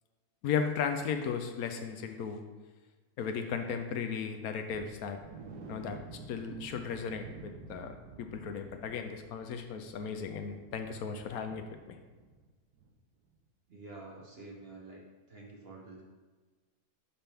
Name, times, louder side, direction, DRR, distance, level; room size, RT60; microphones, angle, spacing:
voice 1, 0.4-2.4 3.2-5.2 5.7-6.0 6.3-12.0, left 6 dB, 75° left, 7 dB, 1.0 m, -36 dB
sound 1, 4.7-12.5 12.7-12.9 13.3-13.4, right 4 dB, 85° right, 1.2 m, -51 dB
voice 2, 13.7-15.0 15.3-16.0, right 3 dB, 45° right, -1 dB, 1.0 m, -48 dB
5.8 x 5.5 x 3.4 m, 1.3 s
omnidirectional pair, 1.6 m